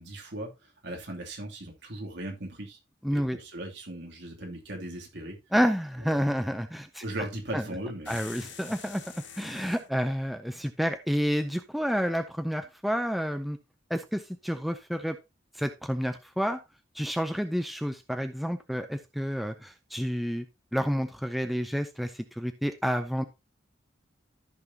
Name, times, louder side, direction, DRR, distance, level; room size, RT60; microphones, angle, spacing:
voice 1, 0.0-2.8 3.1-5.4 6.0-6.3 7.0-8.2, right 1 dB, 60° right, 0 dB, 2.9 m, -38 dB
voice 2, 3.0-3.4 5.5-7.0 7.5-7.6 8.1-13.6 13.9-15.2 15.5-16.6 16.9-20.4 20.7-23.2, equal, ahead, 8 dB, 0.5 m, -29 dB
sound 1, 8.0-9.9, left 7 dB, 65° left, 1.8 m, -45 dB
14.0 x 6.0 x 2.8 m, 0.24 s
head